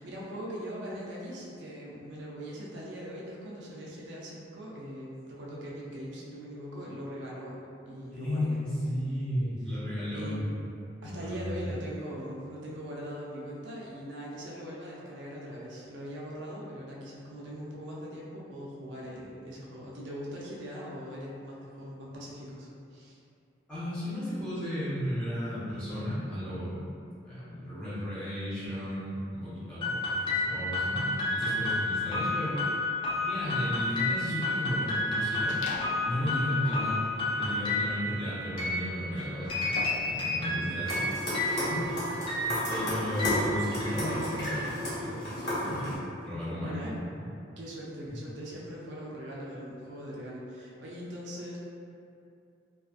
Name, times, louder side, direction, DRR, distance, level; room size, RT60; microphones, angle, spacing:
voice 1, 0.0-8.6 9.7-9.8 10.1-10.4 11.0-23.2 46.6-47.0 47.6-51.6, equal, 75° right, -5 dB, 0.5 m, -41 dB
voice 2, 8.1-10.4 11.0-11.7 23.7-26.8 27.2-32.6 33.1-37.0 37.3-41.0 41.7-42.0 42.5-45.9 46.2-46.8 47.1-47.2 48.1-48.2, equal, 5° left, -13 dB, 0.9 m, -34 dB
sound 1, 29.8-44.3, left 2 dB, 30° left, 0.4 m, -31 dB
sound 2, 35.5-36.1 36.6-40.2, left 2 dB, 90° left, 0.3 m, -43 dB
sound 3, 40.8-46.0, equal, 60° left, 0.9 m, -33 dB
2.4 x 2.3 x 2.4 m, 2.5 s
head